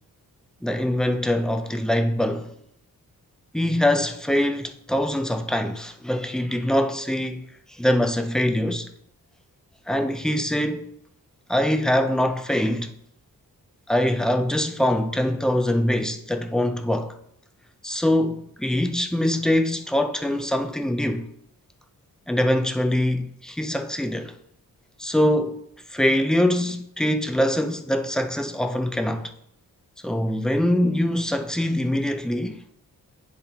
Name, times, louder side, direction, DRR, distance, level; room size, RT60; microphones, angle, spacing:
voice 1, 0.6-2.5 3.5-8.9 9.9-10.9 11.5-12.9 13.9-17.2 17.8-21.3 22.3-24.3 25.0-25.6 25.9-29.3 30.0-32.6, left 1 dB, ahead, 0.4 m, -23 dB
10.0 x 3.5 x 2.8 m
wide cardioid pair, 130°, 35 cm